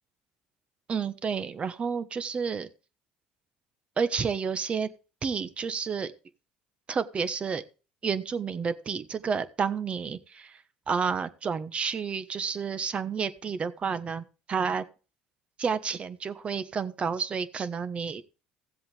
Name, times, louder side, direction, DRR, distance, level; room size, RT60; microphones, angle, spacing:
voice 1, 0.9-2.7 4.0-4.9 5.2-6.1 6.9-7.6 8.0-14.8 15.6-18.2, right 6 dB, 35° right, 13 dB, 1.2 m, -30 dB
16.5 x 7.7 x 3.4 m, 0.34 s
supercardioid pair, 80°, 3 cm